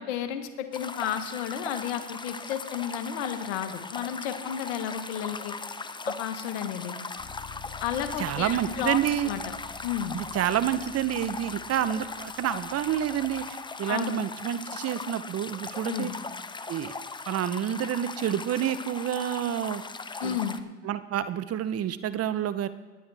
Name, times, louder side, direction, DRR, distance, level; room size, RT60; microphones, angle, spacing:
voice 1, 0.0-5.6 6.0-7.0 7.8-9.0 9.2-9.5 9.8-10.2 13.9-14.2 15.9-16.1 20.2-20.6, left 9 dB, 80° left, 9 dB, 1.3 m, -32 dB
sound 1, 0.7-20.6, left 4 dB, 15° left, 0.6 m, -39 dB
Bass guitar, 7.2-13.4, left 7 dB, 55° left, 4.0 m, -49 dB
voice 2, 8.2-9.3 10.1-16.1 16.7-16.9 17.3-19.8 20.2-20.4 20.8-22.7, right 10 dB, 45° right, 14 dB, 0.8 m, -28 dB
19.5 x 10.0 x 3.4 m, 1.3 s
hypercardioid pair, 75°, 33 cm